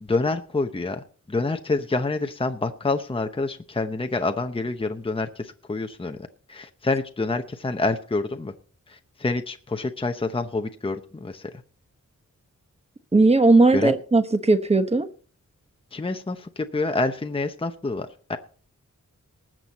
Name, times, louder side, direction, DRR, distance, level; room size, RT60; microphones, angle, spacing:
voice 1, 0.0-6.2 6.5-8.5 8.9-11.5 13.7-13.9 15.9-18.4, left 3 dB, 15° left, 0.8 m, -27 dB
voice 2, 13.1-15.1, right 2 dB, 20° right, 1.1 m, -18 dB
19.5 x 7.7 x 4.2 m
wide cardioid pair, 130°, 31 cm